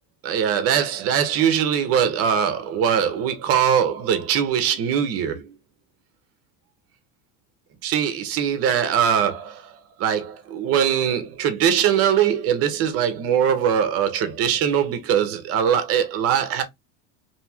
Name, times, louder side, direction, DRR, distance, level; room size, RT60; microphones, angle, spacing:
voice 1, 0.2-5.5 7.8-16.6, right 8 dB, 40° right, 0.6 m, -21 dB
2.8 x 2.8 x 2.2 m
cardioid pair, 160°, 36 cm